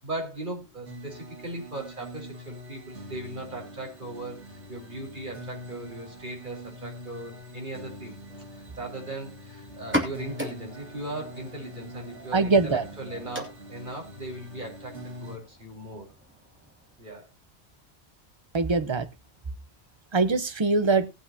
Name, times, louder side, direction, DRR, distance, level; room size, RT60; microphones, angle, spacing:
voice 1, 0.0-8.1 8.6-16.1 17.0-17.3, right 1 dB, 45° right, 4.4 m, -38 dB
sound 1, 0.9-15.4, equal, 90° right, 2.4 m, -44 dB
sound 2, 9.7-17.2, equal, 10° right, 2.6 m, -38 dB
voice 2, 12.3-12.8 18.5-19.1 20.1-21.1, right 3 dB, 30° right, 0.8 m, -22 dB
18.5 x 8.2 x 2.8 m
omnidirectional pair, 1.1 m